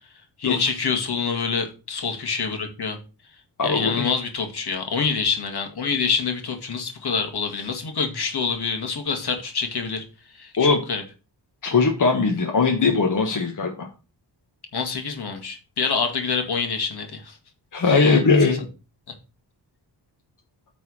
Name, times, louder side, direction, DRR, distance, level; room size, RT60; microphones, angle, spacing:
voice 1, 0.4-3.0 3.6-10.0 10.3-11.0 14.7-17.4 17.9-18.2, left 5 dB, 65° left, 4 dB, 2.2 m, -26 dB
voice 2, 3.6-4.1 10.6-10.8 11.6-13.9 17.7-18.6, left 4 dB, 45° left, 1 dB, 1.5 m, -20 dB
9.2 x 4.2 x 6.3 m, 0.32 s
wide cardioid pair, 140°, 42 cm